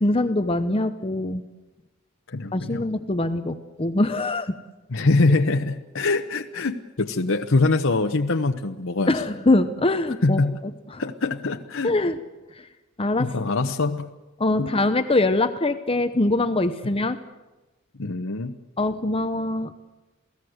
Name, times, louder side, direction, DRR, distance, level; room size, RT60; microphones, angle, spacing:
voice 1, 0.0-1.4 2.5-4.6 9.1-10.4 10.9-11.0 11.8-12.2 13.0-13.3 14.4-17.2 18.8-19.7, left 2 dB, 25° left, 9 dB, 0.8 m, -23 dB
voice 2, 2.3-2.8 4.9-9.2 10.2-10.6 11.0-11.9 13.2-14.1 14.6-14.7 18.0-18.5, left 3 dB, 65° left, 5 dB, 0.9 m, -23 dB
28.0 x 17.0 x 7.9 m, 1.1 s
head